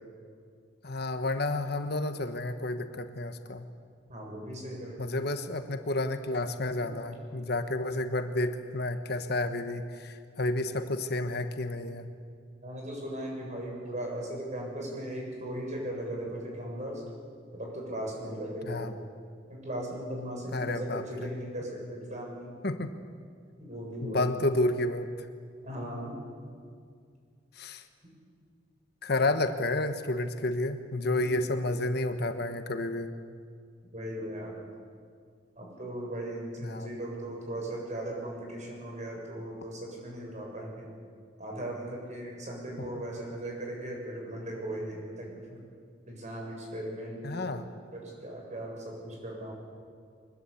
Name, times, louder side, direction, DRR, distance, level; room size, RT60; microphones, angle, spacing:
voice 1, 0.8-3.6 5.0-12.1 18.6-18.9 20.5-21.0 22.6-22.9 24.0-25.1 27.6-27.8 29.0-33.1 36.6-37.0 42.8-43.0 47.2-47.7, left 2 dB, 60° left, 8 dB, 1.3 m, -31 dB
voice 2, 4.1-5.1 6.8-6.9 12.6-17.0 17.5-19.0 19.5-22.5 23.6-24.2 25.6-26.1 31.2-31.5 33.9-34.6 35.6-40.9 41.4-45.6 46.1-47.6 47.9-49.5, right 1 dB, 40° right, -1 dB, 7.3 m, -38 dB
23.5 x 21.0 x 8.6 m, 2.1 s
head